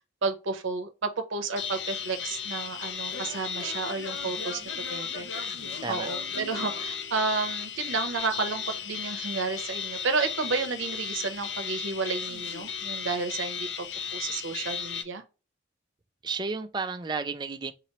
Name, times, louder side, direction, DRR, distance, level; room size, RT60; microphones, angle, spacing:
voice 1, 0.2-5.6 5.9-13.9 14.1-15.2, right 4 dB, 80° right, 0.7 m, -31 dB
sound 1, 1.6-15.0, left 7 dB, 60° left, 0.5 m, -35 dB
Singing / Plucked string instrument, 1.8-7.7, left 1 dB, 85° left, 1.0 m, -44 dB
voice 2, 16.2-17.7, right 4 dB, 20° right, 0.3 m, -32 dB
3.9 x 2.8 x 2.9 m
head